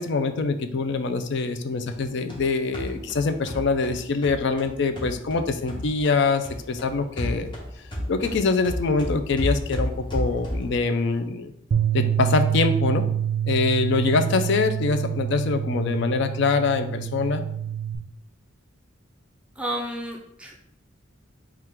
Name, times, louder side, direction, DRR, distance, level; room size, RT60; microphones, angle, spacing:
voice 1, 0.0-7.5 8.1-11.5 11.9-13.1 13.5-17.4, left 4 dB, 60° left, 9 dB, 0.4 m, -24 dB
sound 1, 1.9-6.2 6.4-10.8, equal, 25° left, 0.9 m, -32 dB
Bass guitar, 11.7-18.0, right 9 dB, 80° right, 0.4 m, -26 dB
voice 2, 19.6-20.6, right 1 dB, 5° right, 0 dB, 0.4 m, -32 dB
3.5 x 2.4 x 4.4 m, 0.75 s
head